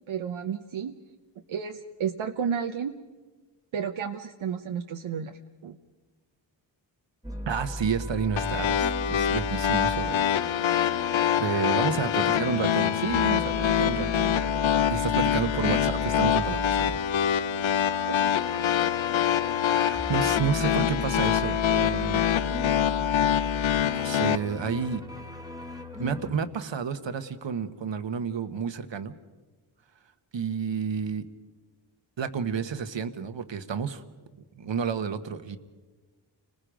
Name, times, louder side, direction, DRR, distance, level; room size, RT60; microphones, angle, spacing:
voice 1, 0.1-0.9 1.5-2.9 3.7-5.8 18.1-18.2 19.7-19.9, right 7 dB, 80° right, 4 dB, 1.0 m, -32 dB
sound 1, 7.2-26.3, equal, 10° right, 1.7 m, -37 dB
voice 2, 7.5-10.2 10.8-14.4 14.9-16.9 19.5-22.2 23.8-25.0 26.0-29.1 30.3-31.2 32.2-34.0 34.6-35.6, right 6 dB, 65° right, 10 dB, 1.3 m, -30 dB
sound 2, 8.4-24.4, left 10 dB, 75° left, 0.7 m, -25 dB
30.0 x 20.5 x 5.1 m, 1.3 s
cardioid pair, 70°, 47 cm